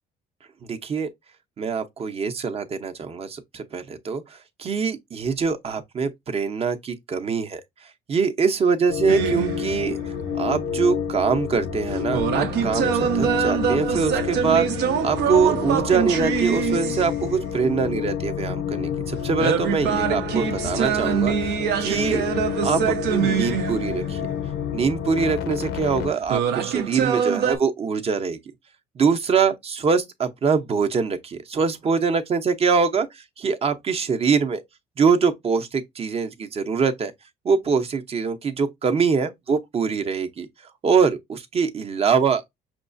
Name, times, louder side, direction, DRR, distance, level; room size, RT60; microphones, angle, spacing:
voice 1, 0.7-1.1 1.6-7.6 8.1-10.0 10.3-22.2 22.6-24.2 24.7-28.4 29.0-33.1 33.4-34.6 35.0-37.1 37.4-40.5 40.8-42.5, right 5 dB, 35° right, 0.7 m, -23 dB
sound 1, 8.9-26.1, left 8 dB, 80° left, 0.6 m, -29 dB
sound 2, 9.1-10.0 11.9-17.5 19.4-24.3 26.2-27.6, right 8 dB, 75° right, 0.7 m, -24 dB
6.0 x 2.4 x 2.5 m
cardioid pair, 110°, 17 cm